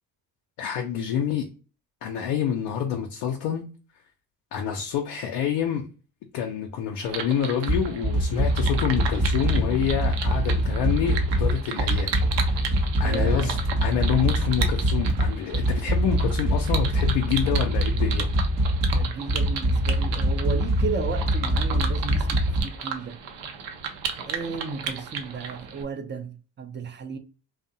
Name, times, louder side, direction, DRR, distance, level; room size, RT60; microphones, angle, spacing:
voice 1, 0.6-1.5 2.0-3.7 4.5-5.9 6.3-12.1 12.4-12.7 13.0-13.6 13.8-18.3, left 8 dB, 70° left, 0.5 m, -27 dB
sound 1, 7.1-25.8, right 7 dB, 70° right, 0.6 m, -35 dB
sound 2, 7.7-22.6, equal, 40° right, 0.9 m, -24 dB
voice 2, 13.0-13.7 18.7-23.2 24.3-27.2, right 5 dB, 25° right, 0.5 m, -34 dB
2.5 x 2.0 x 2.6 m
hypercardioid pair, 55°, 44 cm